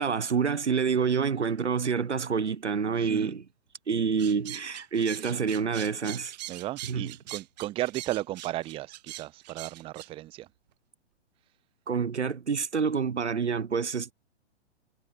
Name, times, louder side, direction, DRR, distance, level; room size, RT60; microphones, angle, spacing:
voice 1, 0.0-3.4 3.9-6.3 6.9-7.1 11.9-14.1, right 6 dB, 75° right, 1.0 m, -27 dB
voice 2, 3.0-3.3 6.5-10.5, right 16 dB, 15° right, 0.9 m, -35 dB
sound 1, 4.2-10.1, right 15 dB, 35° right, 1.7 m, -42 dB
figure-of-eight pair, 115°, 35 cm